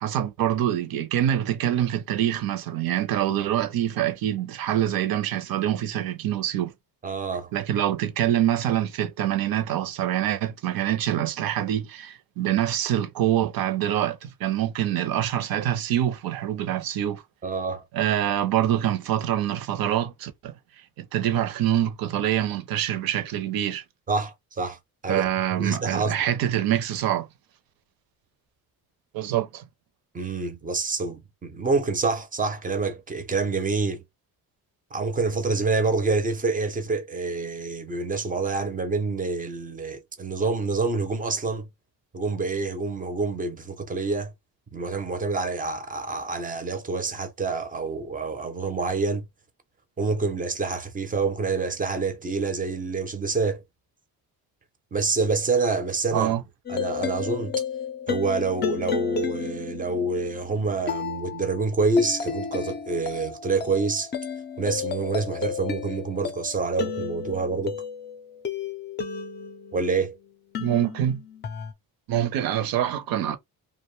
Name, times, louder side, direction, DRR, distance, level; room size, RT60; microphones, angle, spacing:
voice 1, 0.0-6.7 7.5-17.2 17.9-20.5 21.0-23.8 25.1-27.3 29.1-29.6 56.1-56.4 70.6-71.2 72.1-73.4, right 11 dB, 65° right, 0.6 m, -25 dB
voice 2, 7.0-7.5 17.4-17.8 24.1-26.2 30.1-34.0 34.9-41.7 42.1-44.3 44.7-49.2 50.0-53.6 54.9-56.4 56.7-57.6 58.1-64.1 64.6-67.8 69.7-70.1, right 3 dB, 20° right, 0.5 m, -27 dB
sound 1, 56.7-70.0 70.5-71.7, left 6 dB, 30° left, 0.4 m, -33 dB
2.5 x 2.1 x 3.0 m
cardioid pair, 140°, 38 cm